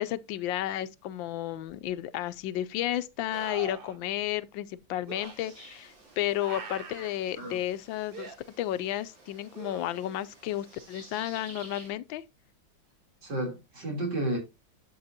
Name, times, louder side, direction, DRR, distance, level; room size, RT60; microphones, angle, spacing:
voice 1, 0.0-12.2, left 13 dB, 85° left, 1.3 m, -32 dB
sound 1, 1.7-1.8 3.3-4.0 5.1-5.3 6.4-7.1 8.1-8.4 9.5-10.2 13.4-13.5, right 5 dB, 40° right, 0.8 m, -42 dB
sound 2, 5.2-11.9, right 2 dB, 85° right, 4.2 m, -52 dB
voice 2, 13.2-14.4, right 1 dB, 65° right, 4.0 m, -32 dB
11.5 x 6.6 x 2.8 m
omnidirectional pair, 2.0 m